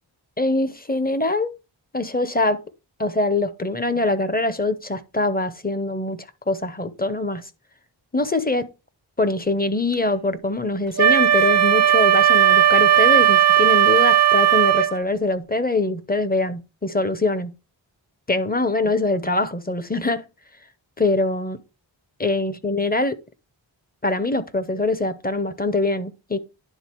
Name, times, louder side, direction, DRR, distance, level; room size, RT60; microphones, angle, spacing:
voice 1, 0.4-1.6 1.9-2.6 3.0-7.4 8.1-8.7 9.2-17.5 18.3-20.2 21.0-21.6 22.2-23.1 24.0-26.4, left 2 dB, 20° left, 0.9 m, -23 dB
Wind instrument woodwind instrument, 11.0-15.0, right 10 dB, 35° right, 0.6 m, -16 dB
10.5 x 3.9 x 4.6 m
wide cardioid pair, 75°, 47 cm